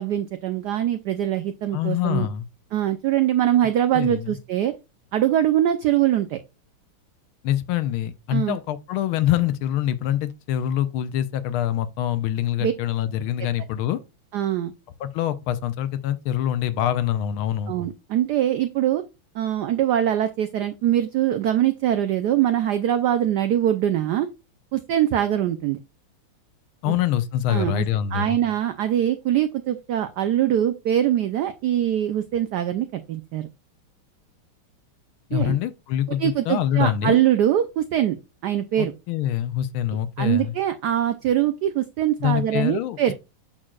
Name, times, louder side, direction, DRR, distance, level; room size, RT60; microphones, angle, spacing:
voice 1, 0.0-2.3 2.7-4.7 5.1-6.4 8.3-8.6 12.6-12.7 14.3-14.7 17.7-19.0 19.3-24.3 24.7-25.8 26.9-27.0 27.5-33.5 35.3-35.6 36.2-38.2 38.4-38.9 40.2-43.1, right 11 dB, 90° right, 0.9 m, -23 dB
voice 2, 1.7-2.5 3.9-4.4 7.4-14.0 15.0-17.7 26.8-28.4 35.3-37.2 38.8-40.5 42.2-43.1, left 11 dB, 80° left, 1.4 m, -25 dB
7.5 x 6.3 x 2.3 m
omnidirectional pair, 2.4 m